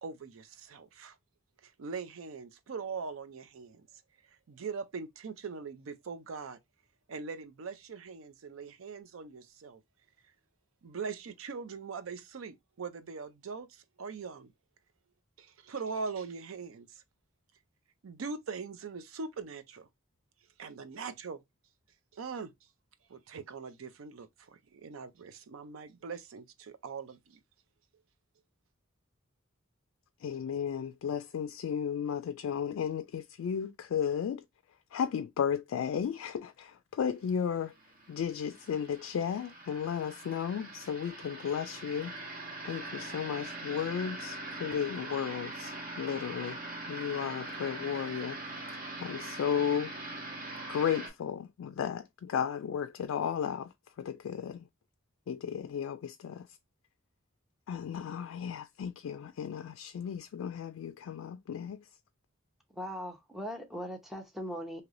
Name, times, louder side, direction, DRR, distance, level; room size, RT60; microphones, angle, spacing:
voice 1, 0.0-1.2 1.6-3.9 4.5-6.6 7.1-9.8 10.8-14.5 15.4-17.0 18.0-19.9 20.6-21.4 22.1-22.5 23.1-27.4, right 5 dB, 80° right, 0.5 m, -41 dB
voice 2, 30.2-34.5 34.9-37.7 38.1-42.1 42.6-46.6 46.9-48.4 49.0-49.9 50.7-54.7 55.3-56.6 57.7-61.9, left 8 dB, 80° left, 0.3 m, -34 dB
sound 1, 37.6-51.1, right 2 dB, 45° right, 1.2 m, -42 dB
voice 3, 62.7-64.8, equal, ahead, 0.7 m, -39 dB
3.2 x 2.8 x 2.5 m
head